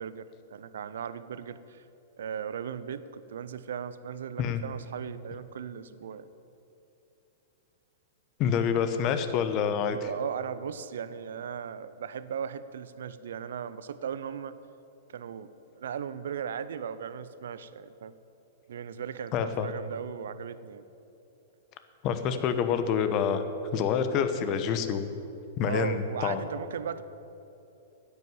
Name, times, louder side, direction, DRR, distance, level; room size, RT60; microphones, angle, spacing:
voice 1, 0.0-1.8 2.2-6.3 9.9-14.6 15.1-18.2 18.7-20.9 25.7-27.0, right 8 dB, 75° right, 14 dB, 0.6 m, -37 dB
voice 2, 8.4-10.0 19.3-19.7 22.0-23.4 23.7-25.1 25.6-26.4, left 7 dB, 40° left, 9 dB, 1.1 m, -27 dB
10.5 x 8.3 x 9.4 m, 2.9 s
hypercardioid pair, 115°, 0 cm